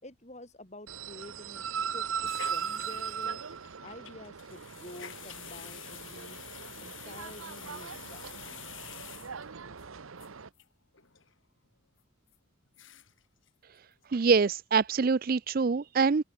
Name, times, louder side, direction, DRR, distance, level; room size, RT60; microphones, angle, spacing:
voice 1, 0.0-3.4 3.8-6.4 6.8-8.8, left 1 dB, 30° left, 3.9 m, -49 dB
sound 1, 0.9-10.5, right 7 dB, 75° right, 0.9 m, -39 dB
sound 2, 2.3-9.8 10.2-10.3 10.6-10.7 10.9-11.3 11.7-11.8 12.3-12.4 12.7-13.2 13.5-13.6 13.9-14.4 14.8-14.9, left 10 dB, 65° left, 3.8 m, -48 dB
voice 2, 14.1-16.2, right 5 dB, 45° right, 0.4 m, -25 dB
open air
head